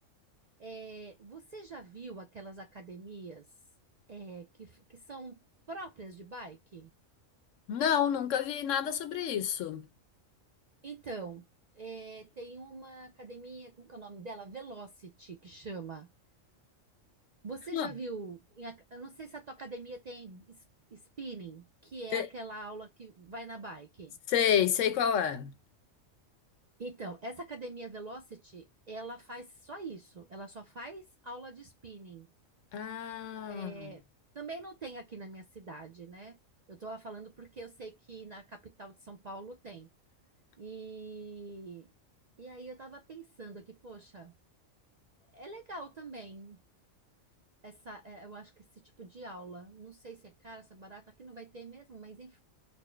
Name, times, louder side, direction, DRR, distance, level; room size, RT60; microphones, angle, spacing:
voice 1, 0.6-3.5 4.1-5.4 5.7-6.9 10.8-11.5 11.8-16.1 17.4-20.6 20.9-24.2 26.8-32.3 33.5-34.0 34.3-36.4 36.7-39.9 40.6-41.9 42.4-44.3 45.3-46.6 47.6-52.4, right 3 dB, 50° right, 0.5 m, -45 dB
voice 2, 7.7-9.9 17.7-17.9 22.1-22.3 24.3-25.5 32.7-33.9, left 9 dB, 75° left, 1.0 m, -29 dB
4.3 x 2.1 x 3.2 m
omnidirectional pair, 1.4 m